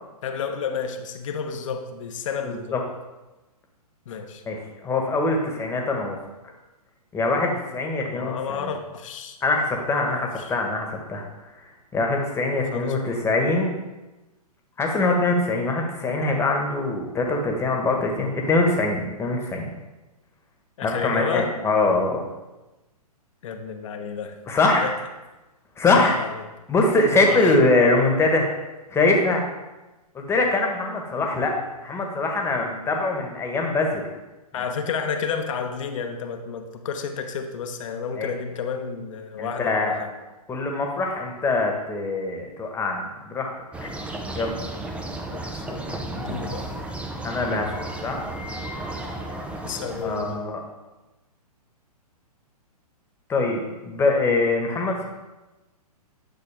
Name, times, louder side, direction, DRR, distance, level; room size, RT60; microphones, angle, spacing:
voice 1, 0.2-2.8 4.1-4.4 8.0-9.4 9.9-10.5 12.7-13.3 20.8-21.5 23.4-24.4 24.6-24.9 26.0-26.4 27.3-27.6 31.2-31.3 34.5-40.1 45.3-46.7 49.6-50.5, left 6 dB, 55° left, 6 dB, 1.0 m, -31 dB
voice 2, 2.4-2.8 4.5-6.2 7.1-8.7 9.4-11.2 11.9-13.7 14.8-19.7 20.8-22.2 24.5-24.8 25.8-26.1 26.7-28.5 28.9-29.4 30.1-31.5 31.8-34.0 38.1-38.3 39.4-40.0 40.5-43.5 43.8-43.9 44.3-44.6 47.2-48.2 50.0-50.6 53.3-55.0, left 2 dB, 15° left, 1 dB, 1.4 m, -23 dB
sound 1, 43.7-50.4, right 2 dB, 5° right, 0.6 m, -33 dB
10.0 x 6.2 x 3.5 m, 1.1 s
figure-of-eight pair, 120°, 20 cm